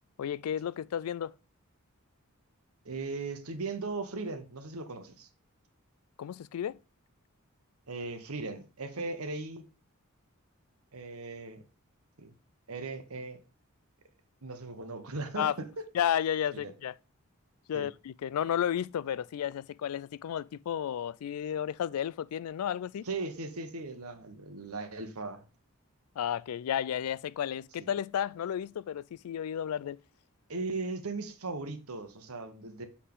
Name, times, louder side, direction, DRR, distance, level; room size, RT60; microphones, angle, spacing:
voice 1, 0.2-1.3 6.2-6.8 15.4-15.6 15.9-16.9 17.7-23.1 26.2-30.0, left 9 dB, 85° left, 0.3 m, -32 dB
voice 2, 2.8-5.3 7.9-9.7 10.9-11.6 12.2-12.3 12.7-13.4 14.4-15.5 17.7-17.9 23.0-25.4 30.5-32.9, right 3 dB, 80° right, 1.2 m, -38 dB
7.3 x 4.2 x 3.6 m
head